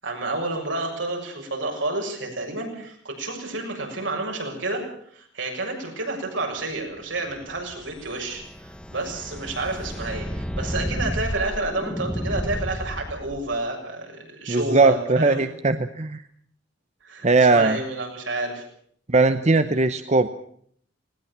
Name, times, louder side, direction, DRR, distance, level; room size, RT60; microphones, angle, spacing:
voice 1, 0.0-4.8 5.1-15.5 17.0-18.7, right 2 dB, 75° right, 1 dB, 7.0 m, -30 dB
sound 1, 7.2-13.5, equal, 5° left, 1.1 m, -32 dB
voice 2, 14.5-16.2 17.2-17.8 19.1-20.3, right 3 dB, 35° right, 10 dB, 0.8 m, -19 dB
19.5 x 19.0 x 7.4 m, 0.62 s
head